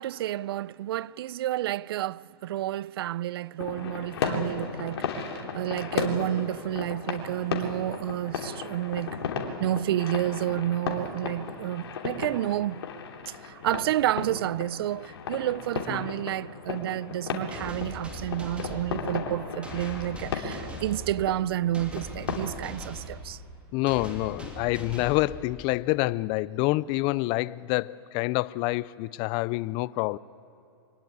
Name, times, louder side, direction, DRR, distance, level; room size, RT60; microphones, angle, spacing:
voice 1, 0.0-9.3 9.6-12.8 13.3-23.4, right 13 dB, 65° right, 0.4 m, -30 dB
sound 1, 3.6-22.6, left 5 dB, 70° left, 3.1 m, -35 dB
sound 2, 17.5-26.0, equal, 10° right, 2.8 m, -42 dB
voice 2, 23.7-30.2, left 20 dB, 35° left, 0.5 m, -27 dB
24.0 x 16.5 x 9.6 m
hypercardioid pair, 135°, 14 cm